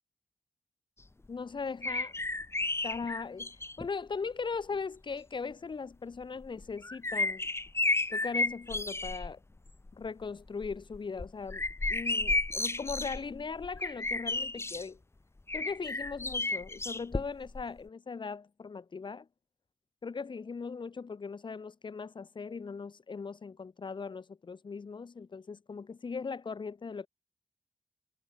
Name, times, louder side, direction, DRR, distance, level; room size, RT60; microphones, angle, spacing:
voice 1, 1.3-2.1 2.8-3.5 3.8-7.4 8.1-9.4 9.9-11.6 11.9-15.0 15.5-19.3 20.0-27.1, left 5 dB, 60° left, 6.3 m, -39 dB
sound 1, 1.8-3.9 4.7-4.8 6.4-9.3 9.7-10.1 10.5-14.8 15.5-17.6 17.9-18.0, left 2 dB, 30° left, 2.1 m, -33 dB
cardioid pair, 50°, 9 cm